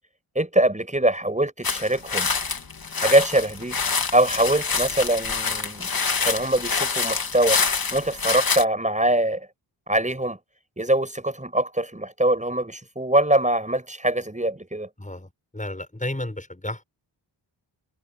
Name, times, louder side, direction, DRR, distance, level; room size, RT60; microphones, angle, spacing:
voice 1, 0.4-2.3 3.0-3.8 4.1-5.9 6.2-7.6 7.9-9.5 9.9-10.4 10.8-14.9, right 1 dB, 15° right, 7.2 m, -23 dB
sound 1, 1.6-8.6, left 5 dB, 50° left, 2.4 m, -26 dB
voice 2, 15.0-16.8, left 1 dB, 15° left, 7.3 m, -32 dB
cardioid pair, 55°, 46 cm